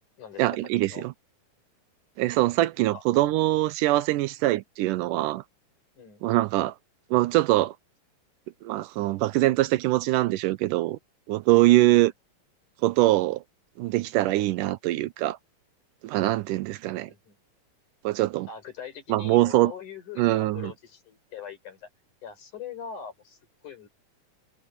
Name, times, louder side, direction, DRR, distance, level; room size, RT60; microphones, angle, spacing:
voice 1, 0.4-1.1 2.2-5.4 6.2-6.7 7.1-7.8 8.6-11.0 11.3-12.1 12.8-13.4 13.8-15.4 16.0-17.1 18.0-18.5 19.1-19.7 20.2-20.7, right 17 dB, 80° right, 2.1 m, -23 dB
voice 2, 11.6-12.0 16.9-17.3 18.5-21.9 22.2-23.9, left 7 dB, 65° left, 6.2 m, -42 dB
omnidirectional pair, 3.9 m